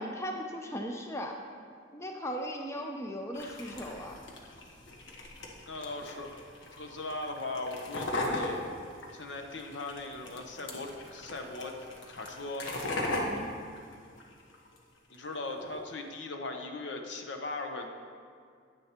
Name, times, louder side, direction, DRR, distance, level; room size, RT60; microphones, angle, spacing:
voice 1, 0.0-1.4 1.9-4.2 13.2-13.5, equal, 15° left, 2 dB, 0.5 m, -37 dB
sound 1, 3.3-14.8 15.1-15.8, left 1 dB, 85° left, 1.2 m, -39 dB
voice 2, 5.7-6.3 6.7-8.6 9.1-11.7 12.1-12.7 15.1-17.9, left 2 dB, 70° left, 4 dB, 0.8 m, -39 dB
9.9 x 9.4 x 2.9 m, 2.2 s
head